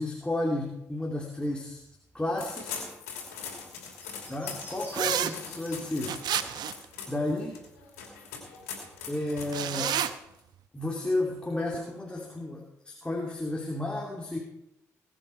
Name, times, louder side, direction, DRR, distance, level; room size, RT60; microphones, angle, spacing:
voice 1, 0.0-1.8 2.1-2.8 4.3-6.2 7.1-7.6 9.1-9.9 10.7-14.4, left 1 dB, 15° left, -1 dB, 2.8 m, -32 dB
sound 1, 0.9-8.3 8.6-10.3, equal, 25° right, 6.6 m, -53 dB
sound 2, 2.4-10.4, left 6 dB, 85° left, 2.8 m, -41 dB
sound 3, 4.9-5.3 6.1-6.9 9.4-10.1, right 10 dB, 65° right, 0.8 m, -29 dB
20.5 x 9.2 x 4.6 m, 0.82 s
hypercardioid pair, 40°, 8 cm